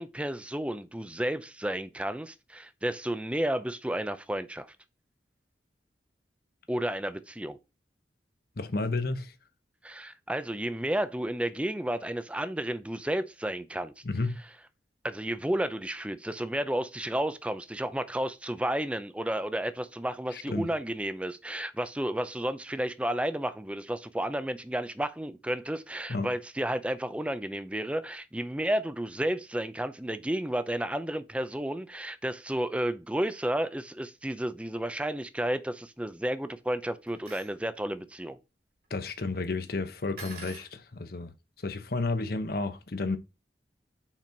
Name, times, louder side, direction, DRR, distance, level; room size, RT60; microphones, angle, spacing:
voice 1, 0.0-4.7 6.7-7.6 9.8-13.9 15.0-38.4, right 1 dB, 5° right, 0.5 m, -32 dB
voice 2, 8.6-9.3 14.0-14.4 20.3-20.7 26.1-26.3 38.9-41.3 41.6-43.2, left 3 dB, 60° left, 0.9 m, -31 dB
sound 1, 37.1-37.5 40.2-40.7, right 3 dB, 60° right, 2.6 m, -45 dB
5.9 x 4.3 x 4.4 m
head